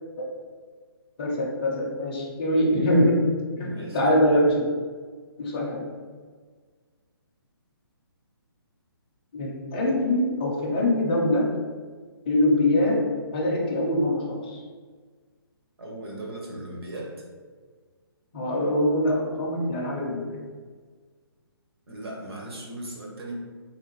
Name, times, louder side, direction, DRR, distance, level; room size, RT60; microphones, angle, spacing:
voice 1, 1.2-3.2 3.6-3.7 3.9-4.7 5.4-5.9 9.3-11.5 12.3-13.0 13.3-14.6 18.3-20.4, left 1 dB, 20° left, -4 dB, 0.4 m, -23 dB
voice 2, 3.5-4.1 15.8-17.2 21.9-23.4, right 1 dB, 75° right, -1 dB, 1.0 m, -37 dB
3.6 x 2.4 x 2.9 m, 1.5 s
hypercardioid pair, 170°, 13 cm